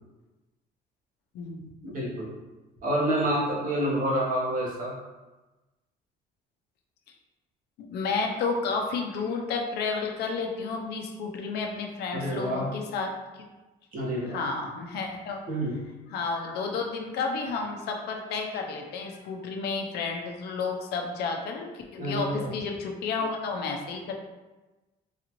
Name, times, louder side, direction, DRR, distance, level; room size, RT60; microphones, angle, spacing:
voice 1, 1.8-2.3 2.8-4.9 12.1-12.8 13.9-14.4 15.5-15.8 22.0-22.5, right 1 dB, 55° right, -4 dB, 1.3 m, -28 dB
voice 2, 7.9-13.5 14.3-15.4 16.1-24.1, left 4 dB, 75° left, 2 dB, 0.6 m, -31 dB
4.0 x 2.5 x 3.0 m, 1.1 s
cardioid pair, 110°, 17 cm